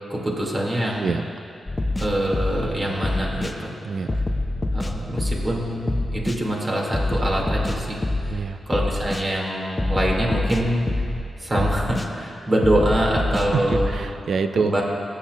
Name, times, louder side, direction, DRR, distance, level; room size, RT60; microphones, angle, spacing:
voice 1, 0.1-1.1 2.0-3.7 4.7-8.0 8.7-10.9 11.4-14.0 14.6-14.8, right 1 dB, 40° right, -2 dB, 2.0 m, -24 dB
sound 1, 1.7-2.7 3.0-3.5 4.1-5.6 5.9-6.4 6.9-8.4 8.7-9.2 9.8-11.2 11.6-12.1 12.6-14.0, left 2 dB, 30° left, 0.6 m, -25 dB
voice 2, 3.8-4.1 8.3-8.6 13.5-14.8, right 5 dB, 65° right, 9 dB, 0.4 m, -26 dB
16.5 x 6.7 x 2.3 m, 2.6 s
supercardioid pair, 45°, 0 cm